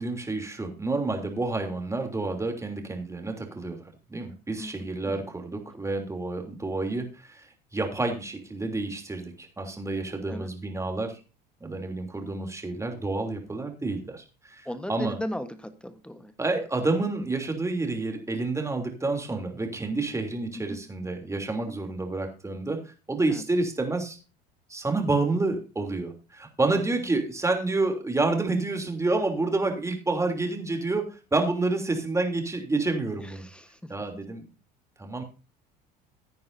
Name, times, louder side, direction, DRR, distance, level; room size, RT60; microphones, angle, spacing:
voice 1, 0.0-3.8 4.1-7.5 7.7-11.1 11.6-15.2 16.4-22.8 23.1-24.2 24.7-31.0 31.3-33.4 33.9-34.4 35.0-35.2, right 3 dB, 15° right, 4 dB, 3.1 m, -29 dB
voice 2, 14.6-16.3 20.7-20.8 23.3-23.4 33.2-33.9, equal, 5° left, 11 dB, 1.2 m, -36 dB
15.5 x 9.4 x 2.7 m, 0.32 s
hypercardioid pair, 75°, 21 cm